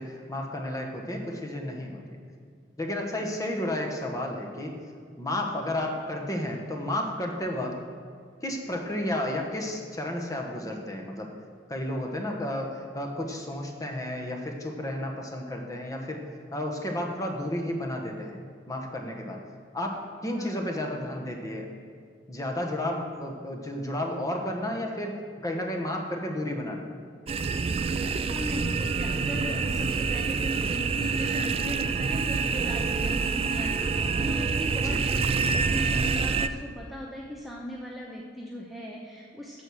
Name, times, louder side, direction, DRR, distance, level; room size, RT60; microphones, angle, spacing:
voice 1, 0.0-2.2 2.8-4.8 5.2-7.8 8.4-11.3 11.7-16.3 16.5-18.4 18.7-19.4 19.7-19.9 20.2-21.7 22.3-26.9 34.8-35.2, left 1 dB, 20° left, 1 dB, 1.1 m, -32 dB
sound 1, 27.3-36.5, right 4 dB, 30° right, 0.3 m, -27 dB
voice 2, 28.0-39.6, left 1 dB, ahead, -3 dB, 0.7 m, -39 dB
8.9 x 6.3 x 7.4 m, 2.1 s
head